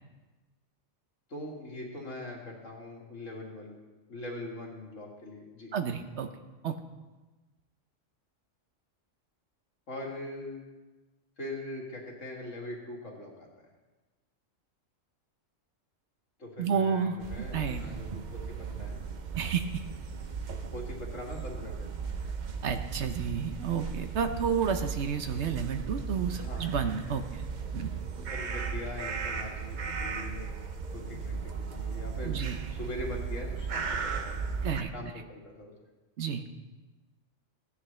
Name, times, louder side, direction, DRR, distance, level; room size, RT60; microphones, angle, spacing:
voice 1, 1.3-3.7 4.1-5.7 9.9-10.6 11.4-13.5 16.4-19.0 20.7-22.1 26.3-26.7 28.2-30.5 30.9-32.4 32.7-34.7 34.9-35.7, left 1 dB, 70° left, -2 dB, 2.3 m, -42 dB
voice 2, 5.7-6.3 6.6-6.8 16.6-17.8 19.4-19.6 22.6-27.5 27.7-27.9 32.2-32.6 34.6-34.9 36.2-36.5, right 7 dB, 65° right, 8 dB, 0.9 m, -31 dB
sound 1, 17.2-34.8, right 5 dB, 50° right, 0.6 m, -36 dB
15.5 x 9.7 x 3.2 m, 1.2 s
omnidirectional pair, 1.3 m